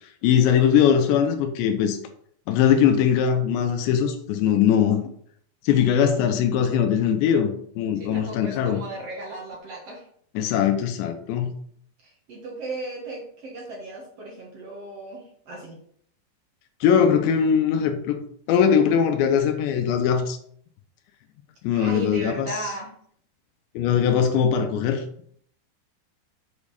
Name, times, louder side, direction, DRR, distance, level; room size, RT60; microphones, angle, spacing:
voice 1, 0.2-2.0 2.5-5.0 5.6-8.8 10.4-11.5 16.8-18.2 18.5-20.4 21.6-22.6 23.8-25.0, left 8 dB, 90° left, 5 dB, 3.1 m, -21 dB
voice 2, 7.9-10.0 12.0-15.8 21.7-22.9, right 2 dB, 65° right, -2 dB, 1.6 m, -36 dB
7.6 x 5.3 x 4.9 m, 0.62 s
omnidirectional pair, 5.0 m